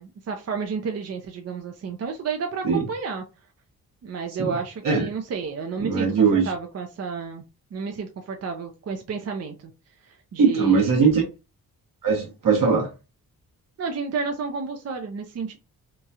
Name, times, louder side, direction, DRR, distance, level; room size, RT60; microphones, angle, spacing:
voice 1, 0.0-3.2 4.0-7.4 7.7-9.5 10.0-11.2 13.8-15.6, right 5 dB, 45° right, 0.5 m, -31 dB
voice 2, 5.8-6.4 10.4-11.2 12.0-12.9, right 5 dB, 70° right, 1.3 m, -20 dB
3.0 x 2.3 x 2.7 m
cardioid pair, 90°, 34 cm